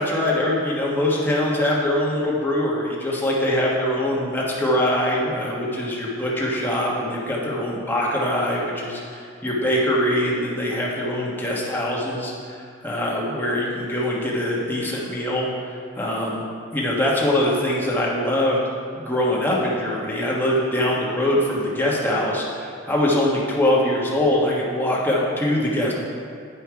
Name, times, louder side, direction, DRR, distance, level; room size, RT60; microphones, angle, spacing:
voice 1, 0.0-16.4 16.7-18.6 18.9-25.9, left 1 dB, 10° left, -5 dB, 1.3 m, -23 dB
10.0 x 5.6 x 4.6 m, 2.4 s
head